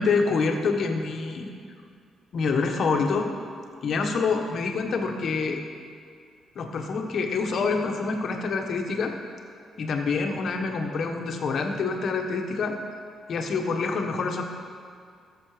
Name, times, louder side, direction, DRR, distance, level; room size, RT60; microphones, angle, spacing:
voice 1, 0.0-1.5 2.3-3.3 3.8-5.6 6.5-9.1 9.8-12.8 13.3-14.4, left 4 dB, 60° left, 4 dB, 1.2 m, -26 dB
13.5 x 7.0 x 5.0 m, 2.3 s
cardioid pair, 90°, 0 cm